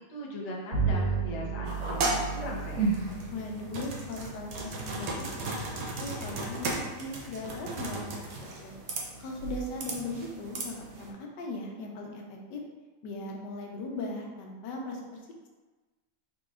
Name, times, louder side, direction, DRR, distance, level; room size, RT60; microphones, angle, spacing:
voice 1, 0.1-3.0, left 1 dB, 45° left, -3 dB, 0.5 m, -39 dB
Bowed string instrument, 0.7-6.4, right 5 dB, 45° right, 1.7 m, -35 dB
sound 1, 1.7-11.1, right 3 dB, 65° right, 1.1 m, -35 dB
voice 2, 3.3-5.6 6.0-8.2 8.6-8.8 9.2-12.6 13.0-15.0, left 2 dB, 85° left, 0 dB, 1.4 m, -38 dB
5.0 x 3.9 x 2.4 m, 1.3 s
omnidirectional pair, 1.8 m